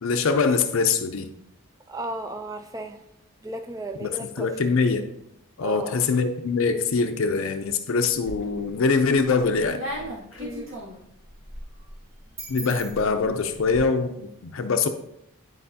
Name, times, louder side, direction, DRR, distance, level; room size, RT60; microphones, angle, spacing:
voice 1, 0.0-1.3 4.0-4.1 4.4-5.0 5.6-9.8 12.5-14.9, left 4 dB, 70° left, 0.5 m, -23 dB
voice 2, 1.9-3.0 3.4-4.6 5.6-6.1 10.4-10.7, right 2 dB, 15° right, 0.4 m, -35 dB
sound 1, 8.2-8.7 9.1-13.8, equal, 65° right, 2.1 m, -38 dB
9.9 x 4.6 x 2.8 m
head